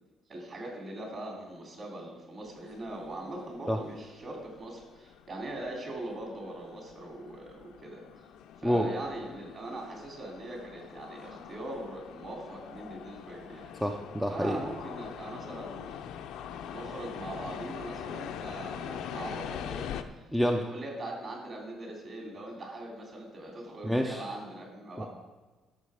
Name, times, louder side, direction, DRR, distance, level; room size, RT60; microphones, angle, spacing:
voice 1, 0.3-8.0 8.6-13.7 14.3-16.0 16.7-19.8 20.6-25.1, right 1 dB, 35° right, 0 dB, 3.0 m, -41 dB
sound 1, 2.5-20.0, left 8 dB, 80° left, 0.7 m, -43 dB
voice 2, 13.8-14.6 20.3-20.6 23.8-24.2 25.0-25.1, equal, 5° right, 3 dB, 0.5 m, -27 dB
12.5 x 6.6 x 5.0 m, 1.3 s
cardioid pair, 145°, 0 cm